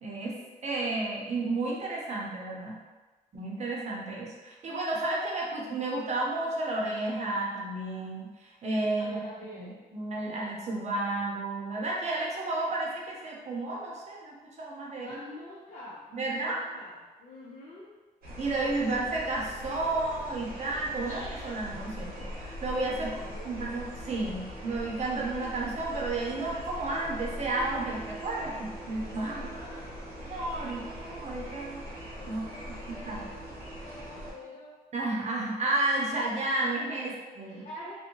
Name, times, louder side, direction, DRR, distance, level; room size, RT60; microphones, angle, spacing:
voice 1, 0.0-0.4 0.6-2.7 3.3-8.3 8.6-9.2 9.6-9.7 9.9-15.2 16.1-16.6 18.4-23.1 23.4-29.5 30.2-31.8 32.3-32.4 32.9-33.3 34.9-37.6, right 2 dB, 45° right, -3 dB, 0.7 m, -32 dB
voice 2, 8.8-9.8 15.0-17.9 22.9-23.6 29.1-29.9 32.2-34.7 36.6-36.7 37.0-37.9, left 1 dB, 50° left, -7 dB, 0.6 m, -47 dB
sound 1, 18.2-34.3, equal, 80° right, 0.9 m, -41 dB
2.6 x 2.1 x 2.9 m, 1.2 s
cardioid pair, 85°, 16 cm